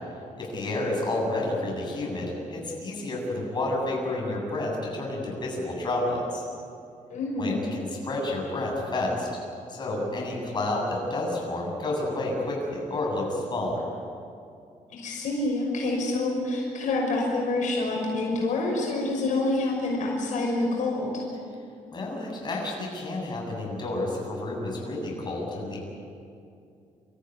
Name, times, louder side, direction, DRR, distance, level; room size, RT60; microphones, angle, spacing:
voice 1, 0.4-6.4 7.4-9.3 9.7-13.9 21.9-25.8, left 2 dB, 35° left, -2 dB, 7.8 m, -30 dB
voice 2, 7.1-7.7 14.9-21.2, left 2 dB, 70° left, -2 dB, 6.0 m, -27 dB
28.0 x 15.0 x 9.7 m, 2.5 s
cardioid pair, 120°, 13 cm